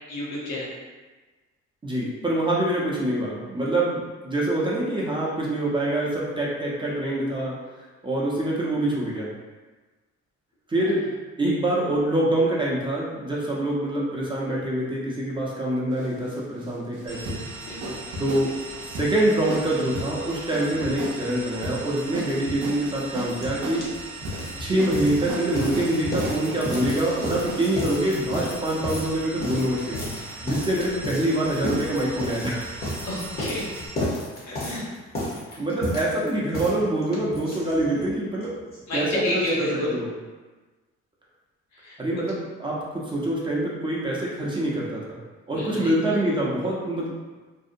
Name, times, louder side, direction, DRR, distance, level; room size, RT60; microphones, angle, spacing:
voice 1, 0.1-0.7 17.6-18.0 33.1-33.7 34.5-34.8 35.5-35.6 38.9-39.9 41.7-42.2 45.6-45.9, left 1 dB, 65° left, -5 dB, 0.8 m, -30 dB
voice 2, 1.8-7.5 8.0-9.3 10.7-11.0 11.4-17.4 18.2-18.5 18.8-23.9 24.6-30.1 30.4-32.6 35.6-38.5 38.9-40.1 42.0-45.2 45.5-47.1, right 1 dB, 15° right, -5 dB, 0.6 m, -25 dB
sound 1, 15.9-27.9, right 1 dB, 90° right, 0.6 m, -36 dB
sound 2, 17.1-33.9, right 2 dB, 50° right, 0.8 m, -39 dB
sound 3, 23.4-23.5 23.7-38.1 38.4-38.5 38.7-38.8 39.1-39.2, left 1 dB, 30° left, 0.8 m, -32 dB
2.6 x 2.0 x 2.5 m, 1.3 s
cardioid pair, 90°, 30 cm